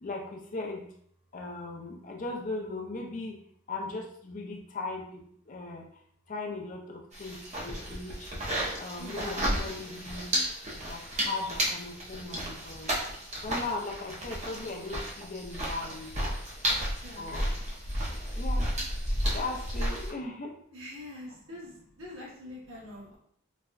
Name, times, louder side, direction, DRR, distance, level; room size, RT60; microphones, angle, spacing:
voice 1, 0.0-0.9 1.3-3.4 3.7-5.0 5.5-5.9 6.3-8.3 8.8-10.3 10.8-12.9 13.4-16.1 17.2-17.5 18.4-18.7 19.3-20.5, left 3 dB, 35° left, 1 dB, 0.4 m, -38 dB
sound 1, 7.1-20.1, equal, 35° right, 0.6 m, -33 dB
voice 2, 9.0-9.5 17.0-17.3 20.7-23.2, left 1 dB, 60° right, -5 dB, 1.1 m, -44 dB
4.0 x 2.2 x 2.4 m, 0.66 s
head